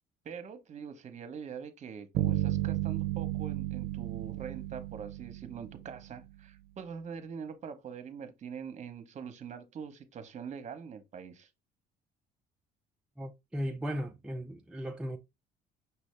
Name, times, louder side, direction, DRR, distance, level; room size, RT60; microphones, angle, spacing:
voice 1, 0.2-11.5, right 6 dB, 45° right, 0.9 m, -43 dB
sound 1, 2.1-6.1, right 15 dB, 70° right, 0.5 m, -33 dB
voice 2, 13.2-15.2, equal, 5° right, 0.4 m, -36 dB
5.8 x 2.7 x 3.2 m
cardioid pair, 110°, 17 cm